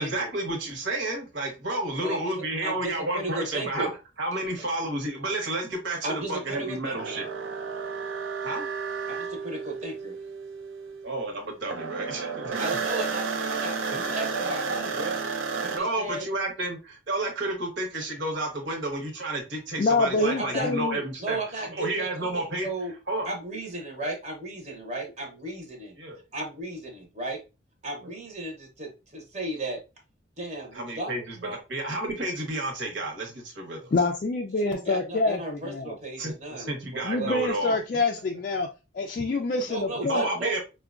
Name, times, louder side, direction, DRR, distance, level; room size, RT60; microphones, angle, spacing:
voice 1, 0.0-3.9 4.2-6.0 6.3-7.3 8.4-8.7 11.0-12.5 14.4-14.8 15.7-22.7 23.1-23.3 26.0-26.2 30.7-33.9 36.2-37.7 40.1-40.6, right 2 dB, 65° right, 2 dB, 1.0 m, -31 dB
voice 2, 2.0-3.9 6.0-7.1 9.1-10.2 12.6-15.2 15.6-16.3 20.1-20.7 21.2-22.9 23.2-25.9 26.3-27.4 27.8-29.8 30.4-31.1 31.4-31.6 34.6-37.3 39.7-40.6, right 2 dB, 35° right, 1 dB, 0.8 m, -35 dB
sound 1, 6.9-11.4 11.6-15.8, right 5 dB, 85° right, 0.5 m, -32 dB
voice 3, 19.8-21.0 33.9-36.0 37.0-38.7 38.9-40.3, left 3 dB, 45° left, 2 dB, 0.3 m, -26 dB
4.6 x 2.2 x 2.4 m, 0.29 s
head